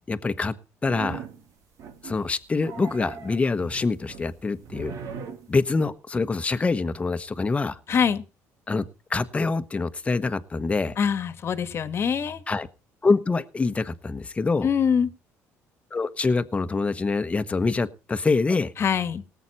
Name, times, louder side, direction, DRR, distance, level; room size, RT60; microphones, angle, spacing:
voice 1, 0.1-0.5 0.8-1.2 2.0-4.9 5.5-7.8 8.7-8.8 9.1-10.9 12.5-12.7 13.0-14.7 15.9-18.7, left 3 dB, 20° left, 10 dB, 1.2 m, -25 dB
sound 1, 0.9-1.4 1.8-2.3 2.6-5.9, right 6 dB, 65° right, 2.1 m, -39 dB
voice 2, 7.9-8.2 11.0-12.4 14.6-15.1 18.8-19.2, left 7 dB, 45° left, 12 dB, 1.5 m, -24 dB
19.0 x 8.2 x 4.2 m, 0.34 s
cardioid pair, 105°, 6 cm